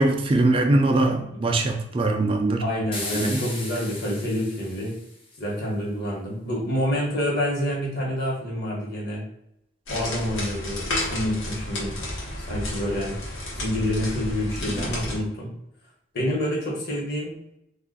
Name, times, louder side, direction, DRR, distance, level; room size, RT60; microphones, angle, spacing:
voice 1, 0.0-2.6 3.1-3.4, right 2 dB, 30° right, 0.3 m, -21 dB
voice 2, 2.6-4.9 5.4-9.2 9.9-11.9 12.4-13.1 13.5-15.5 16.1-17.3, equal, 55° left, 1.1 m, -27 dB
sound 1, 2.9-5.3, left 2 dB, 30° left, 0.6 m, -36 dB
sound 2, 9.9-15.2, left 1 dB, 90° left, 1.0 m, -31 dB
2.4 x 2.4 x 3.8 m
head